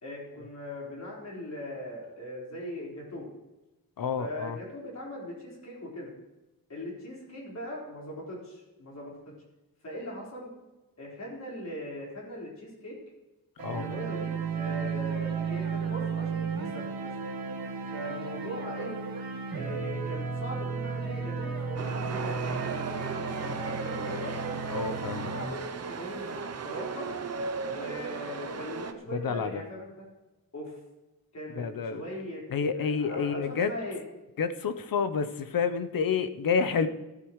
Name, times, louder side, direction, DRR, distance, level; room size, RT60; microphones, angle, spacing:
voice 1, 0.0-3.3 4.2-6.1 6.7-9.2 9.8-10.5 11.0-13.0 13.7-17.1 17.9-18.9 19.5-24.3 24.9-25.6 25.9-27.1 27.7-29.9 30.5-30.8 31.3-32.4 32.7-34.0, left 1 dB, 50° left, -4 dB, 4.5 m, -40 dB
voice 2, 4.0-4.6 13.6-13.9 24.7-25.3 29.1-29.6 31.5-32.0 32.5-33.8 34.4-36.9, left 6 dB, 70° left, 11 dB, 0.8 m, -29 dB
sound 1, 13.6-25.4, right 5 dB, 80° right, 1.6 m, -34 dB
Chatter / Subway metro underground, 21.8-28.9, right 5 dB, 45° right, 0.7 m, -36 dB
15.0 x 13.0 x 3.2 m, 1.1 s
wide cardioid pair, 180°, 35 cm